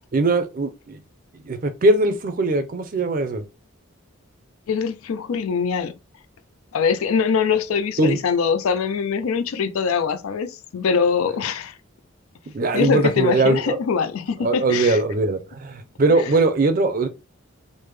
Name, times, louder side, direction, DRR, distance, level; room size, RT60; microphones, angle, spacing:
voice 1, 0.1-1.0 1.4-3.4 8.0-8.2 12.5-13.8 14.4-17.1, right 2 dB, 40° right, 0.4 m, -20 dB
voice 2, 4.7-6.0 6.7-11.7 12.7-15.0 16.1-16.3, left 6 dB, 80° left, 0.4 m, -23 dB
3.3 x 2.1 x 3.1 m
head